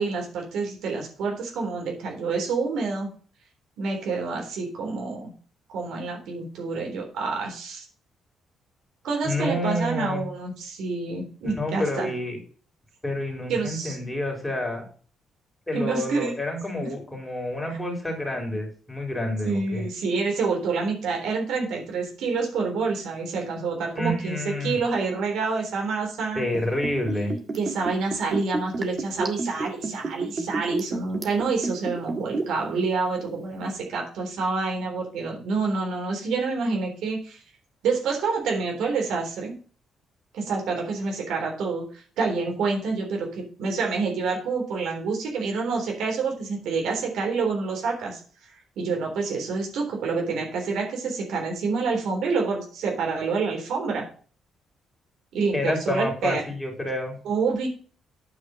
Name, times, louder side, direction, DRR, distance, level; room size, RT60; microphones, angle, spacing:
voice 1, 0.0-3.1 3.8-5.3 5.7-7.8 9.0-12.1 13.5-14.0 15.7-16.3 17.7-17.8 19.4-26.5 27.6-37.4 37.8-39.6 40.3-48.2 48.8-54.1 55.3-56.4 57.3-57.7, right 4 dB, 80° right, 1 dB, 3.5 m, -27 dB
voice 2, 9.2-10.2 11.4-12.4 13.0-14.8 15.7-19.9 23.9-24.8 26.3-27.3 55.5-57.2, left 1 dB, 10° left, 1 dB, 3.8 m, -28 dB
Liquid, 26.5-32.7 33.0-33.1, right 3 dB, 35° right, 1.8 m, -30 dB
9.2 x 5.0 x 6.6 m, 0.41 s
cardioid pair, 90°, 0 cm